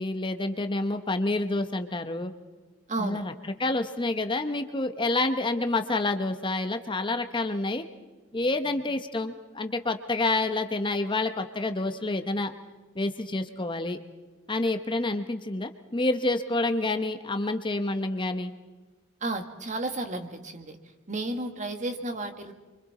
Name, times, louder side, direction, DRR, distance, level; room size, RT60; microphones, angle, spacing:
voice 1, 0.0-2.3 3.0-7.9 8.3-12.5 12.9-14.0 14.5-18.5, left 2 dB, 25° left, 7 dB, 0.9 m, -28 dB
voice 2, 2.9-3.2 19.2-20.8 21.1-22.5, right 2 dB, 40° right, 7 dB, 1.7 m, -32 dB
29.0 x 24.5 x 4.2 m, 1.3 s
head